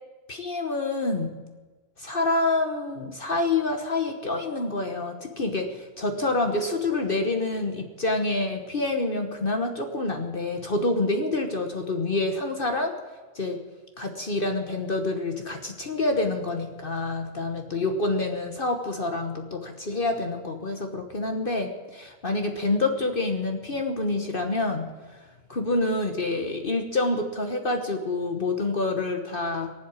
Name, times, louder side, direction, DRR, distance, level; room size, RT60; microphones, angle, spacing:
voice 1, 0.3-1.3 2.0-12.9 13.3-13.6 14.0-24.9 25.5-29.7, left 2 dB, 45° left, 4 dB, 1.4 m, -27 dB
18.5 x 7.9 x 9.5 m, 1.4 s
omnidirectional pair, 1.3 m